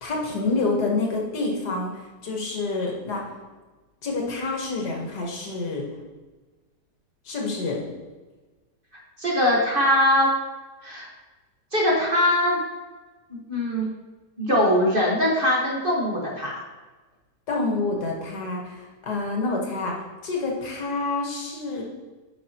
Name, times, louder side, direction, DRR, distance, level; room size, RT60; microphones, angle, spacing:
voice 1, 0.0-3.2 4.0-5.8 7.3-7.9 17.5-19.9 20.2-21.8, left 3 dB, 70° left, -1 dB, 1.9 m, -27 dB
voice 2, 9.2-10.3 10.8-11.1 11.7-12.6 13.3-13.9 14.4-16.5, left 1 dB, 35° right, -4 dB, 1.5 m, -21 dB
9.1 x 5.3 x 2.9 m, 1.2 s
omnidirectional pair, 1.9 m